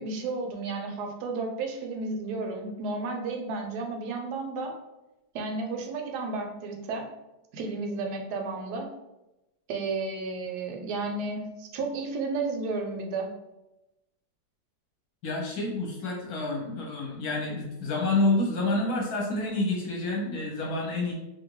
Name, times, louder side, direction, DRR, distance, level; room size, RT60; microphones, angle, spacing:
voice 1, 0.0-4.8 5.3-7.1 7.5-8.9 9.7-13.3, right 3 dB, 70° right, 2 dB, 1.0 m, -32 dB
voice 2, 15.2-21.1, left 2 dB, 65° left, -2 dB, 1.1 m, -28 dB
2.8 x 2.6 x 3.0 m, 0.96 s
omnidirectional pair, 2.0 m